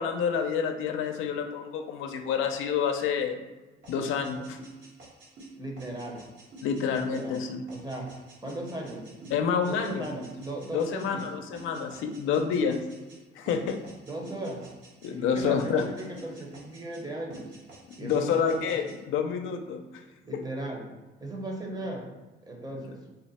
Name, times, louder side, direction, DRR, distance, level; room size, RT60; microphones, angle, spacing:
voice 1, 0.0-3.4 3.9-4.6 6.6-7.6 9.3-10.1 10.7-12.8 13.3-13.8 15.0-15.9 18.0-20.0 22.7-22.9, left 6 dB, 85° left, 5 dB, 0.5 m, -28 dB
sound 1, 3.8-13.2 13.5-15.1 15.4-17.0 17.3-19.0, right 3 dB, 60° right, 1.2 m, -49 dB
voice 2, 5.6-6.2 7.0-7.4 7.7-9.3 9.7-11.2 14.1-14.7 15.1-17.5 18.0-18.8 20.2-20.9 21.2-22.1 22.4-23.0, right 1 dB, 20° right, 0 dB, 0.8 m, -37 dB
3.8 x 2.1 x 4.1 m, 1.2 s
cardioid pair, 90°, 20 cm